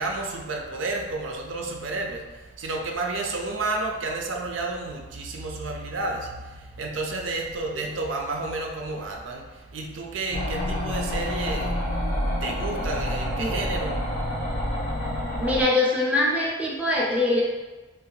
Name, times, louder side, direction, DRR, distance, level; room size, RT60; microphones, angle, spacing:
voice 1, 0.0-14.0 14.3-14.8, right 3 dB, 85° right, 1 dB, 0.5 m, -31 dB
sound 1, 10.3-15.6, equal, 45° left, 0.6 m, -28 dB
voice 2, 15.4-17.4, left 2 dB, 5° right, -6 dB, 0.5 m, -23 dB
2.7 x 2.4 x 3.8 m, 1.2 s
head